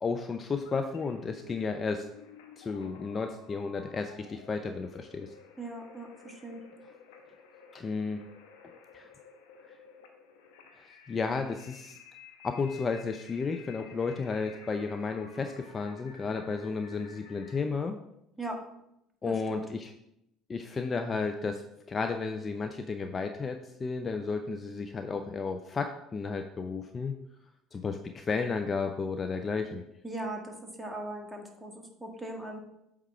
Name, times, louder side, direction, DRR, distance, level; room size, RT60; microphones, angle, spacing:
voice 1, 0.0-2.0 2.6-5.3 7.7-8.2 8.9-9.1 10.8-12.0 12.4-18.0 19.2-19.9 20.5-27.1 27.7-29.8, left 4 dB, 30° left, 6 dB, 0.5 m, -33 dB
sound 1, 0.6-17.6, left 6 dB, 70° left, 0.9 m, -54 dB
voice 2, 5.6-6.6 18.4-18.6 19.2-19.7 30.0-32.6, right 2 dB, 5° right, 1 dB, 1.6 m, -39 dB
8.1 x 3.6 x 4.5 m, 0.80 s
figure-of-eight pair, 60°, 0 cm